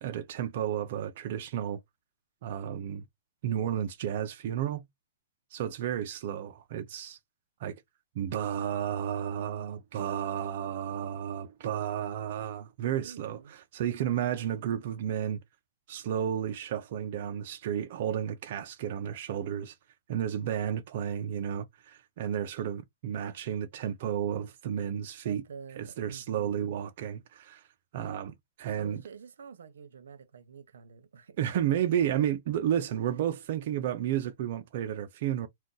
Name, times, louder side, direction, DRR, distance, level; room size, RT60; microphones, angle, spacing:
voice 1, 0.0-1.8 2.4-3.0 3.4-4.8 5.5-7.2 7.6-7.8 8.2-15.4 15.9-19.7 20.1-25.4 25.8-27.6 27.9-29.0 31.4-35.5, right 9 dB, 40° right, 0.4 m, -32 dB
voice 2, 13.0-13.5 25.2-26.8 28.7-31.4, right 6 dB, 85° right, 0.7 m, -48 dB
2.5 x 2.3 x 3.8 m
hypercardioid pair, 165°, 0 cm